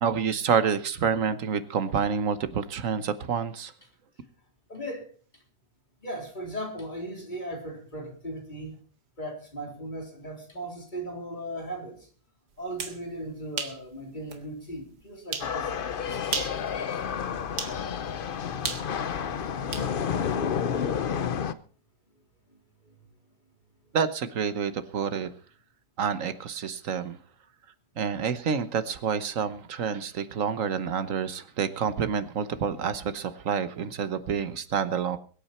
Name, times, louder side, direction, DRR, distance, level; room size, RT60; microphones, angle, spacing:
voice 1, 0.0-3.7 23.9-25.3 26.0-27.2 28.0-35.2, right 7 dB, 55° right, 12 dB, 1.3 m, -28 dB
voice 2, 4.7-5.1 6.0-8.7 9.2-12.0 12.6-16.4 16.7-16.9 19.0-19.1, right 1 dB, 25° left, 0 dB, 3.9 m, -37 dB
sound 1, 12.6-13.0 13.6-13.8 14.3-14.4 15.3-15.5 16.2-16.6 17.6-17.8 18.6-19.9, right 5 dB, 80° right, 2.1 m, -33 dB
Kids at the Park, 15.4-21.5, left 7 dB, 55° left, 0.6 m, -30 dB
22.5 x 8.6 x 4.3 m, 0.41 s
omnidirectional pair, 1.8 m